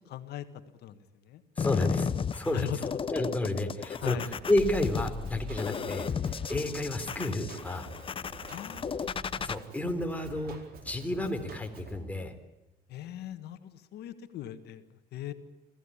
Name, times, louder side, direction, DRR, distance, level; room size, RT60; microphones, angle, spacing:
voice 1, 0.1-0.5 0.8-1.4 2.5-2.9 4.0-4.3 8.5-9.1 12.9-15.3, left 12 dB, 75° left, 9 dB, 1.7 m, -40 dB
sound 1, 1.6-9.6, left 6 dB, 30° left, 0.8 m, -34 dB
voice 2, 1.6-2.7 3.1-7.9 9.4-10.6 10.8-12.3, left 1 dB, 10° left, 4 dB, 3.5 m, -31 dB
Drum kit, 4.0-12.0, right 3 dB, 65° right, 4.5 m, -48 dB
25.5 x 15.5 x 9.9 m, 0.99 s
cardioid pair, 110°, 17 cm